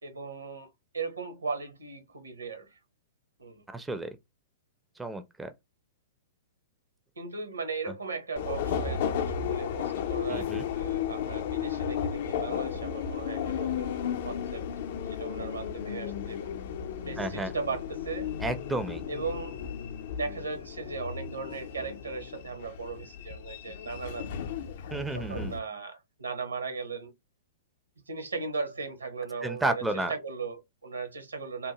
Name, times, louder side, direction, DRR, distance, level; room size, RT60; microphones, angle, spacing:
voice 1, 0.0-2.8 3.4-3.6 7.2-14.6 15.0-16.5 17.1-18.3 19.1-19.6 20.2-24.4 25.1-27.1 28.1-29.8 30.1-31.7, right 4 dB, 85° right, 0.9 m, -37 dB
voice 2, 3.7-4.2 5.0-5.5 7.8-7.9 10.3-10.6 17.2-17.5 18.4-19.0 24.9-25.6 29.4-30.1, right 2 dB, 5° right, 0.4 m, -32 dB
Subway metro underground, 8.4-25.6, left 8 dB, 55° left, 0.4 m, -34 dB
2.7 x 2.1 x 2.8 m
figure-of-eight pair, 110°, 0 cm